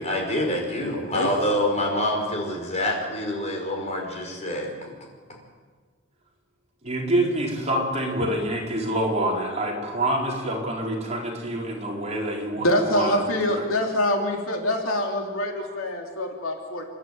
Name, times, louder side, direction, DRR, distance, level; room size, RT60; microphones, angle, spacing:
voice 1, 0.0-4.9, left 1 dB, 35° left, 1 dB, 5.4 m, -26 dB
voice 2, 0.8-1.3 12.6-16.8, left 1 dB, 80° left, 2 dB, 3.4 m, -25 dB
voice 3, 6.8-13.7 15.6-15.7, right 1 dB, 35° right, -2 dB, 4.4 m, -27 dB
29.0 x 11.5 x 9.2 m, 1.5 s
head